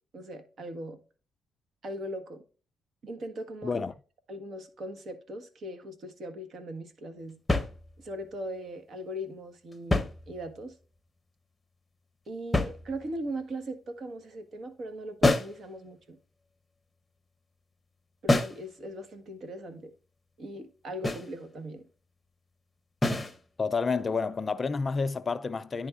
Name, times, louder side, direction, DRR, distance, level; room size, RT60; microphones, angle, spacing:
voice 1, 0.1-1.0 1.8-2.4 3.0-3.8 4.3-7.4 8.0-10.7 12.3-16.2 18.2-19.9 20.4-21.8, right 1 dB, 60° right, 1.4 m, -39 dB
voice 2, 3.6-3.9 23.6-25.9, left 4 dB, 35° left, 0.4 m, -29 dB
sound 1, 7.5-8.3 9.7-10.8 12.5-13.3 15.2-15.7 18.3-18.7 21.0-21.4 23.0-23.4, left 2 dB, 15° left, 0.8 m, -27 dB
10.5 x 3.5 x 3.7 m
cardioid pair, 90°, 0 cm